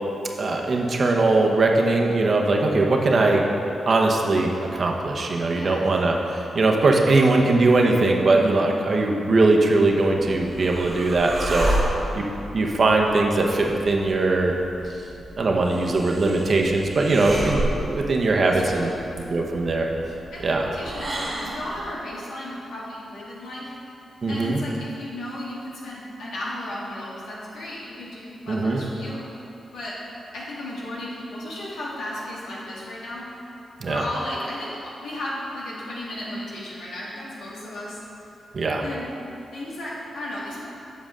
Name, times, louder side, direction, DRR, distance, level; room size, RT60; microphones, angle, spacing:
voice 1, 0.4-3.4 3.9-11.7 12.1-12.2 12.5-14.5 15.4-18.9 19.3-19.9 20.4-20.7 24.2-24.6 28.5-28.8 33.8-34.0 38.5-38.8, right 2 dB, 55° right, 1 dB, 0.9 m, -20 dB
voice 2, 5.5-5.8 11.5-11.9 18.4-19.0 20.3-23.7 24.3-29.3 29.7-30.0 30.3-33.3 33.8-38.0 38.8-39.1 39.5-40.6, left 1 dB, 85° left, -6 dB, 1.7 m, -34 dB
sound 1, 10.3-21.9, right 1 dB, 40° right, 1.4 m, -32 dB
7.6 x 7.1 x 3.7 m, 2.8 s
cardioid pair, 60°, 0 cm